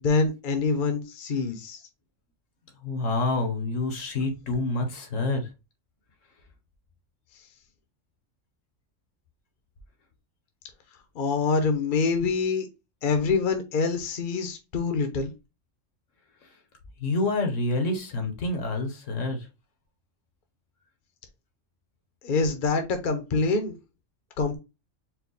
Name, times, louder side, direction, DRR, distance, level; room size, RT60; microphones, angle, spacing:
voice 1, 0.0-1.8 11.2-12.7 13.0-15.3 22.2-23.8 24.4-24.6, left 4 dB, 45° left, 0.9 m, -25 dB
voice 2, 2.8-5.5 17.0-19.5, left 2 dB, 75° left, 1.4 m, -27 dB
4.6 x 2.3 x 3.9 m
omnidirectional pair, 1.3 m